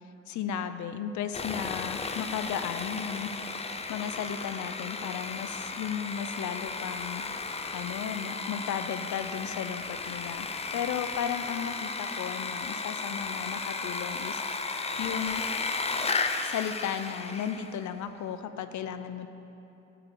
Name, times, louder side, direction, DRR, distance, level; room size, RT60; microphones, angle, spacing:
voice 1, 0.3-10.5 10.7-14.6 15.0-15.4 16.4-19.3, left 8 dB, 70° left, 10 dB, 0.6 m, -35 dB
Sawing, 1.3-17.8, left 4 dB, 20° left, 0.6 m, -34 dB
11.5 x 4.8 x 7.9 m, 2.9 s
cardioid pair, 90°, 30 cm